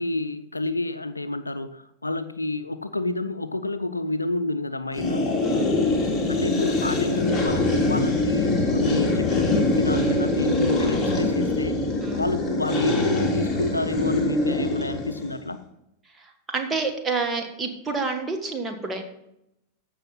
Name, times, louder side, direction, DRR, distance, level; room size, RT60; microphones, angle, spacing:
voice 1, 0.0-5.3 6.3-11.8 12.2-15.6, left 2 dB, 80° left, 12 dB, 0.6 m, -28 dB
sound 1, 4.9-15.4, left 2 dB, 15° left, 2.6 m, -24 dB
voice 2, 5.4-5.8 12.0-12.3 16.2-16.3 16.5-19.0, right 4 dB, 15° right, 3 dB, 1.7 m, -28 dB
14.5 x 5.6 x 5.6 m, 0.83 s
figure-of-eight pair, 90°, 0 cm